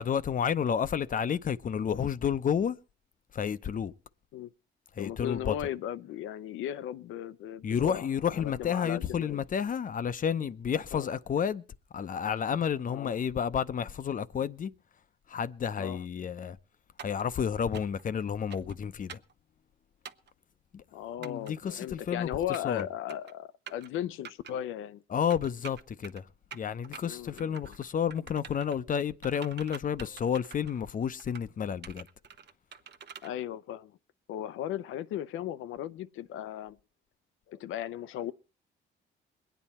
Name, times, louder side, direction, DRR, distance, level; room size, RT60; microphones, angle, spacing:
voice 1, 0.0-2.8 3.3-3.9 4.9-5.5 7.6-11.6 11.9-14.7 15.3-16.6 17.0-19.2 20.7-20.8 21.2-22.9 25.1-32.1, left 8 dB, 40° left, 0.7 m, -31 dB
voice 2, 5.0-8.1 8.4-9.4 10.9-11.1 12.9-13.1 15.8-16.0 20.9-25.0 27.0-27.7 33.2-34.0 34.3-36.8 37.5-38.3, left 11 dB, 85° left, 0.6 m, -36 dB
sound 1, 17.0-17.2 17.7-18.0 18.5-18.8 19.1-19.3 20.0-20.3 21.2-21.5 22.3-22.8 23.1-23.3 23.7-23.9 24.2-24.5 25.3-26.2 26.5-27.0 27.4-27.8 28.1-28.8 29.2-30.8 31.2-31.5 31.8-33.3, right 7 dB, 60° right, 0.9 m, -46 dB
22.0 x 9.2 x 4.2 m
cardioid pair, 90°, 20 cm